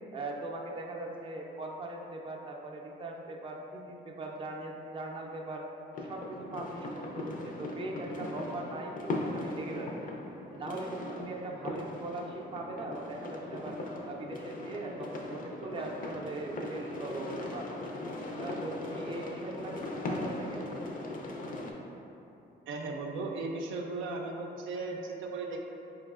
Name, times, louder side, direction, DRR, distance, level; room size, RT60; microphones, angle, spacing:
voice 1, 0.1-5.7 6.0-10.1 10.5-13.8 14.0-17.9 18.4-20.8, right 2 dB, 25° right, -1 dB, 0.5 m, -40 dB
Fireworks in background, 5.9-21.7, left 2 dB, 45° left, 0.5 m, -39 dB
voice 2, 22.7-25.6, right 3 dB, 80° right, 1 dB, 0.4 m, -36 dB
4.5 x 3.1 x 2.4 m, 2.9 s
cardioid pair, 90°, 20 cm